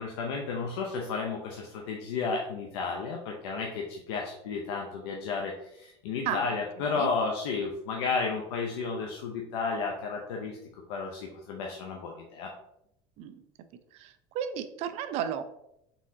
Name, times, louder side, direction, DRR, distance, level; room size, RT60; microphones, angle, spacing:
voice 1, 0.0-12.5, left 4 dB, 85° left, 0 dB, 0.6 m, -33 dB
voice 2, 6.8-7.1 13.2-13.4 13.9-15.4, right 9 dB, 50° right, 10 dB, 0.4 m, -34 dB
4.0 x 3.6 x 2.7 m, 0.79 s
supercardioid pair, 140°, 13 cm